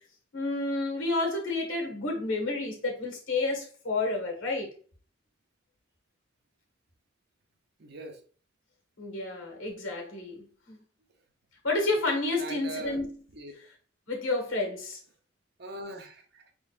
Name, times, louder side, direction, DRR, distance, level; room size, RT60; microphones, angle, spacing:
voice 1, 0.3-4.7 9.0-10.7 11.6-13.2 14.1-15.0, left 2 dB, 80° left, 1.6 m, -30 dB
voice 2, 7.8-8.2 12.4-13.0 13.3-13.5 15.6-16.5, right 2 dB, 55° right, 0.8 m, -41 dB
4.9 x 3.8 x 2.5 m
head